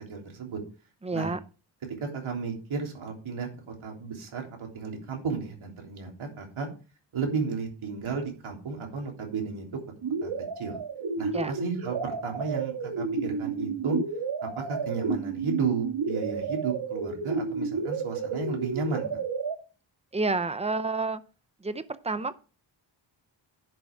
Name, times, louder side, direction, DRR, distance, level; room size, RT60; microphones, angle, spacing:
voice 1, 0.1-0.6 1.1-1.4 1.9-6.7 7.1-9.7 10.2-10.3 10.6-10.8 11.2-14.0 14.4-19.2, right 5 dB, 85° right, 3.5 m, -33 dB
voice 2, 1.0-1.4 11.3-11.5 20.1-21.2 21.6-22.4, right 3 dB, 15° right, 0.6 m, -29 dB
sound 1, 10.0-19.6, right 4 dB, 65° right, 1.8 m, -31 dB
11.0 x 6.5 x 4.6 m
wide cardioid pair, 170°, 47 cm